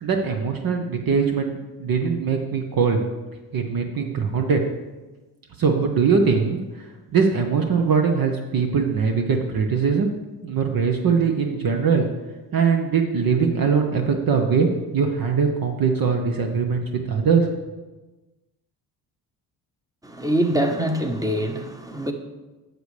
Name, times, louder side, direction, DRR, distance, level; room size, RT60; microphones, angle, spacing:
voice 1, 0.0-3.0 3.5-4.6 5.6-6.9 7.1-10.1 10.4-12.1 12.5-17.5, right 5 dB, 45° right, 4 dB, 1.0 m, -21 dB
voice 2, 20.0-22.1, right 1 dB, 5° right, 4 dB, 1.1 m, -24 dB
9.0 x 6.7 x 3.3 m, 1.2 s
hypercardioid pair, 55°, 48 cm